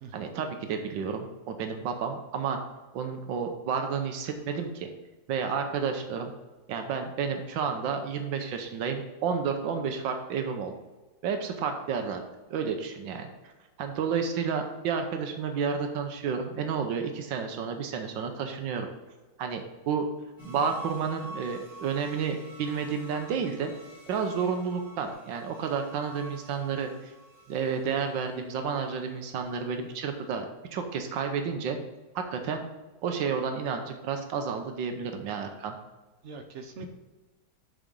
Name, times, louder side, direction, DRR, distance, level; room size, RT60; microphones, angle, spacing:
voice 1, 0.1-2.6 2.9-4.9 5.3-6.3 6.7-10.7 11.2-12.2 12.5-13.3 13.8-18.9 19.4-20.1 20.4-23.7 24.1-27.1 27.5-30.4 30.7-31.8 32.1-32.7 33.0-35.7, right 6 dB, 85° right, 5 dB, 1.5 m, -31 dB
sound 1, 20.4-29.7 30.1-30.2, right 2 dB, 15° left, 2.8 m, -48 dB
voice 2, 36.2-36.9, right 3 dB, 55° right, 6 dB, 0.8 m, -43 dB
7.5 x 4.8 x 5.3 m, 1.2 s
omnidirectional pair, 2.0 m